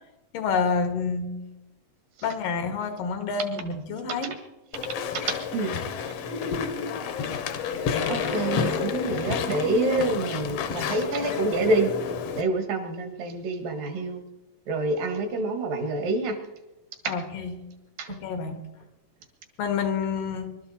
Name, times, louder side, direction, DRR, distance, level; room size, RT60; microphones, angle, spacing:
voice 1, 0.3-1.4 2.2-4.4 17.0-17.6 18.1-18.6 19.6-20.5, left 5 dB, 85° left, 6 dB, 3.4 m, -28 dB
Walk footsteps / Chatter / Squeak, 4.7-12.4, left 6 dB, 65° left, 1.6 m, -30 dB
voice 2, 5.1-5.8 8.1-11.9 12.4-14.2 14.7-16.4 17.0-17.1 18.0-18.1, right 2 dB, 85° right, 5 dB, 3.6 m, -27 dB
25.0 x 13.0 x 4.3 m, 1.0 s
omnidirectional pair, 3.8 m